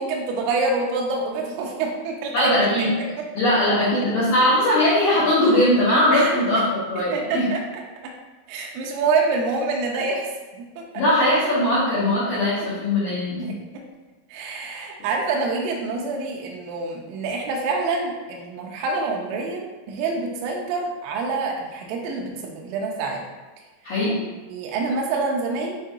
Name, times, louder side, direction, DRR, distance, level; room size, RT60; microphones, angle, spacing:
voice 1, 0.0-2.5 6.1-6.3 7.1-7.6 8.0-8.1 8.5-10.3 10.8-10.9 13.4-13.5 14.3-23.2 24.1-25.8, right 3 dB, 85° right, -1 dB, 2.8 m, -26 dB
voice 2, 2.3-2.9 3.4-7.5 11.0-13.5 23.8-24.2, left 1 dB, 85° left, -10 dB, 2.0 m, -20 dB
7.4 x 2.7 x 2.4 m, 1.2 s
omnidirectional pair, 5.9 m